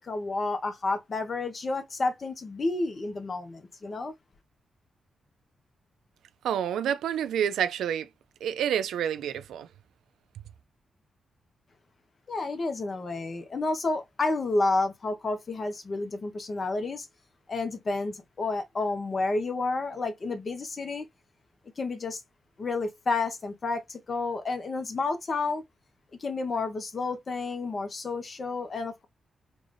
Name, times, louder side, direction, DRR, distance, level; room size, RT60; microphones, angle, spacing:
voice 1, 0.0-4.1 12.3-17.1 17.5-21.1 21.8-22.2 22.6-25.6 26.2-29.0, left 3 dB, 50° left, 1.0 m, -30 dB
voice 2, 6.4-8.1 8.4-9.7, right 9 dB, 80° right, 0.4 m, -28 dB
3.8 x 2.5 x 3.3 m
supercardioid pair, 45°, 0 cm